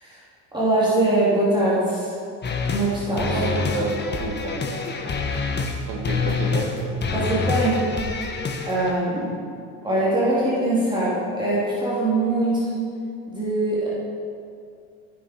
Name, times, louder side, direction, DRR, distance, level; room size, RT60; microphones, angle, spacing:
voice 1, 0.5-2.1 2.7-3.4 7.1-7.8 8.1-8.3 8.7-9.4 9.8-12.7 13.3-13.9, right 1 dB, 15° right, -8 dB, 3.4 m, -22 dB
sound 1, 2.4-2.9 3.2-5.8 6.0-6.7 7.0-8.9, left 4 dB, 30° left, 1.4 m, -26 dB
voice 2, 3.2-4.6 5.6-6.8, right 3 dB, 65° right, 0 dB, 2.6 m, -29 dB
14.5 x 10.5 x 4.7 m, 2.4 s
cardioid pair, 120°, 36 cm